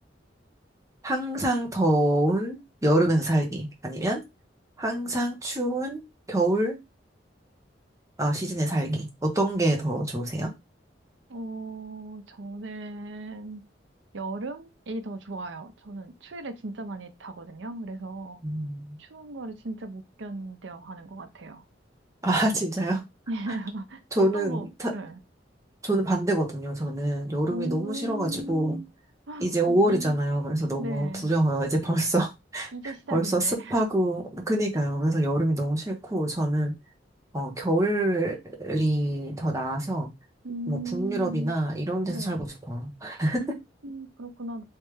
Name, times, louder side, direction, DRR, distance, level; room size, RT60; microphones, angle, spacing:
voice 1, 1.0-4.2 4.8-6.0 6.3-6.8 8.2-10.5 18.4-19.0 22.2-23.0 24.1-24.9 25.8-28.8 29.4-32.7 33.1-36.7 37.3-40.1 40.7-43.4, right 1 dB, 15° right, 0.9 m, -26 dB
voice 2, 11.3-13.6 14.1-18.4 19.0-21.6 23.3-25.2 27.5-28.9 29.3-30.2 30.8-31.3 32.7-33.8 40.4-41.5 42.1-42.5 43.3-44.6, right 2 dB, 80° right, 0.6 m, -37 dB
3.3 x 3.2 x 3.2 m
head